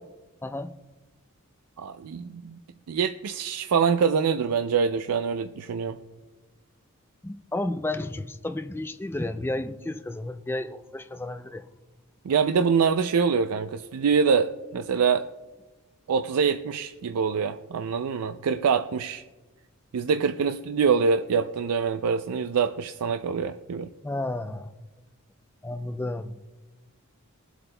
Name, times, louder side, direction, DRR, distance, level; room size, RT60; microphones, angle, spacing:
voice 1, 0.4-0.7 7.2-11.7 24.0-24.7 25.6-26.4, left 2 dB, 10° left, 9 dB, 0.3 m, -32 dB
voice 2, 1.8-2.6 2.9-6.0 12.2-15.2 16.1-19.2 19.9-23.9, right 6 dB, 85° right, 8 dB, 0.4 m, -25 dB
22.0 x 8.0 x 2.2 m, 1.2 s
head